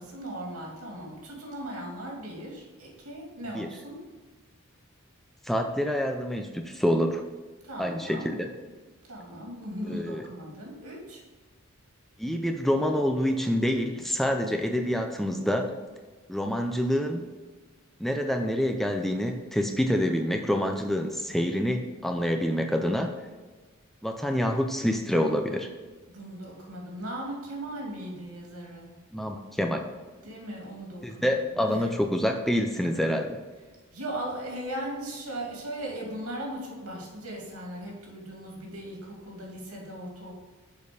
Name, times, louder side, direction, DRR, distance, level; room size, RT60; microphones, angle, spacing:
voice 1, 0.0-4.0 7.6-8.3 9.1-11.2 26.1-28.9 30.2-31.9 33.9-40.3, right 1 dB, 90° right, -2 dB, 2.5 m, -38 dB
voice 2, 5.5-7.2 7.8-8.5 9.8-10.2 12.2-15.7 16.3-17.2 18.0-23.1 24.0-25.7 29.1-29.9 31.0-33.4, equal, ahead, 4 dB, 0.5 m, -27 dB
6.7 x 5.1 x 5.3 m, 1.3 s
head